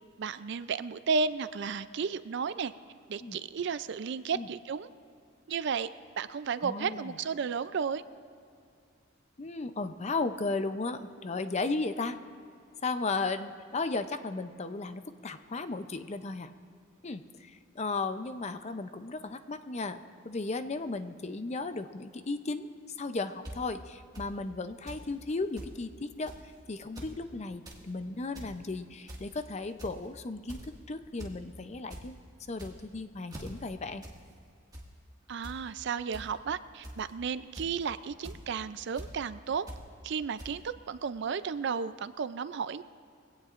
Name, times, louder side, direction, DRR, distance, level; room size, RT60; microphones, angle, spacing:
voice 1, 0.2-2.7 3.1-4.9 5.5-5.9 6.2-8.0 35.3-39.7 40.0-42.8, right 5 dB, 60° right, 14 dB, 0.4 m, -33 dB
voice 2, 6.6-7.2 9.4-12.2 12.8-16.5 17.0-22.7 23.0-26.3 26.7-32.2 32.5-34.1, left 3 dB, 35° left, 9 dB, 0.5 m, -35 dB
sound 1, 23.4-23.5 24.1-24.3 24.9-25.0 25.3-25.4 25.6-25.7 26.2-26.5 26.8-27.1 27.5-27.8 28.2-28.5 29.1-29.4 29.8-30.1 30.5-30.7 31.2-31.3 31.7-32.0 32.5-32.9 33.3-33.5 34.0-34.2 34.5-34.8 35.4-35.6 36.1-36.2 36.8-37.1 37.5-37.8 38.2-38.4 38.9-39.1 39.7-39.8 40.4-40.5, equal, 20° right, 1.8 m, -43 dB
22.5 x 17.0 x 2.5 m, 2.3 s
head